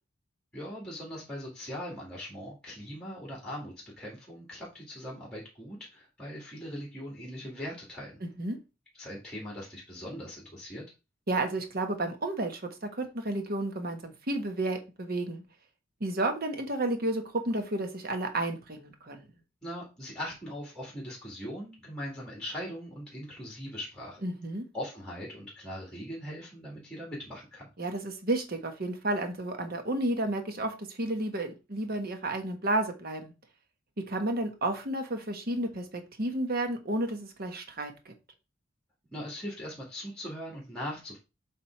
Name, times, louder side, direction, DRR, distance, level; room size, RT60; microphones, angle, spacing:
voice 1, 0.5-8.2 9.0-10.8 19.6-24.2 24.7-27.7 39.1-41.2, equal, 5° left, 2.2 m, -40 dB
voice 2, 11.3-15.4 16.0-19.3 24.2-24.6 27.8-33.3 34.0-38.1, right 1 dB, 50° right, 1.2 m, -32 dB
7.5 x 3.5 x 4.5 m
head